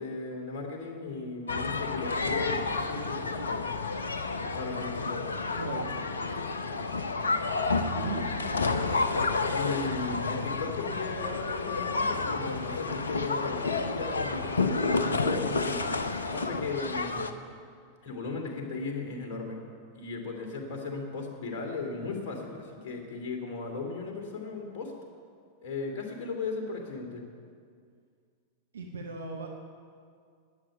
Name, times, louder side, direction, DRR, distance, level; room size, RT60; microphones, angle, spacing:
voice 1, 0.0-3.6 4.5-5.3 9.5-15.8 16.3-17.3 18.0-19.6 19.9-24.9 25.6-27.2, left 3 dB, 45° left, 1 dB, 2.8 m, -36 dB
sound 1, 1.5-17.3, left 3 dB, 70° left, 0.8 m, -30 dB
voice 2, 5.5-5.9 7.9-8.3 28.7-29.5, right 4 dB, 70° right, 1 dB, 1.2 m, -36 dB
12.0 x 9.1 x 9.1 m, 2.2 s
figure-of-eight pair, 90°, 0 cm